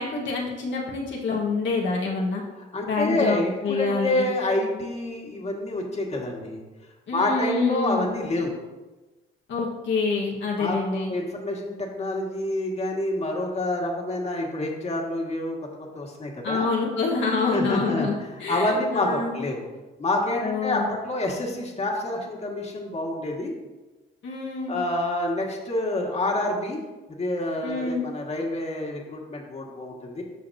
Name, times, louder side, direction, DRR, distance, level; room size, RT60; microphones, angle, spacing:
voice 1, 0.0-2.4 2.9-4.3 7.1-8.1 9.5-11.1 16.4-18.1 18.4-19.4 20.4-20.9 24.2-24.8 27.6-28.0, left 4 dB, 70° left, -3 dB, 1.4 m, -26 dB
voice 2, 2.6-6.6 7.1-8.5 10.6-16.7 17.4-19.6 20.0-23.5 24.7-26.8 27.2-30.2, left 1 dB, 35° left, -1 dB, 1.9 m, -28 dB
14.0 x 5.1 x 2.7 m, 1.2 s
cardioid pair, 90°, 20 cm